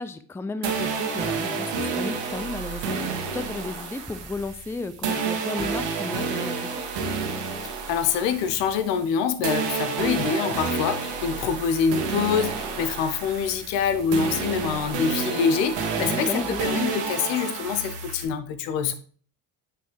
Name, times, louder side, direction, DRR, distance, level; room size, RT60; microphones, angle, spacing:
voice 1, 0.0-6.8 16.0-16.6, left 3 dB, 5° left, 0.5 m, -34 dB
sound 1, 0.6-9.1 9.4-18.2, right 5 dB, 70° right, 1.5 m, -30 dB
voice 2, 7.9-18.9, left 6 dB, 70° left, 0.9 m, -25 dB
9.0 x 3.4 x 3.4 m
hypercardioid pair, 45°, 45 cm